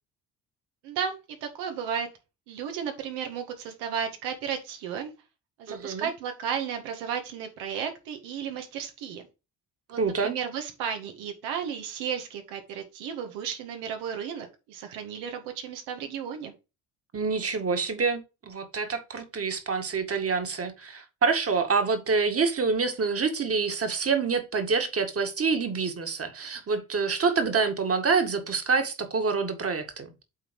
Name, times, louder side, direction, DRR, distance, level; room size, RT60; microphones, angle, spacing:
voice 1, 0.8-1.2 1.4-2.1 2.5-5.1 5.6-9.2 9.9-16.5, right 7 dB, 80° right, 1.8 m, -34 dB
voice 2, 5.7-6.1 10.0-10.4 17.1-30.1, right 4 dB, 35° right, 2.0 m, -27 dB
8.4 x 3.8 x 4.7 m
supercardioid pair, 65°, 40 cm